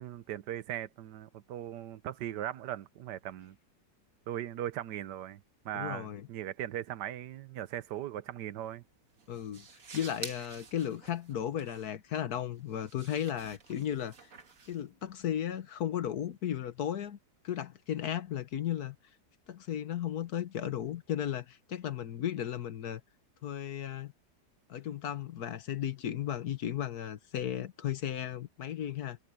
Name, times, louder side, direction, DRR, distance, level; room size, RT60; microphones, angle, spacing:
voice 1, 0.0-3.6 4.3-8.8, right 12 dB, 85° right, 1.4 m, -39 dB
voice 2, 5.7-6.3 9.3-9.7 9.9-14.3 14.7-17.2 17.4-19.0 19.5-23.0 23.4-24.1 24.7-29.2, left 10 dB, 65° left, 1.5 m, -35 dB
sound 1, 8.6-15.5, right 5 dB, 55° right, 2.1 m, -50 dB
omnidirectional pair, 1.8 m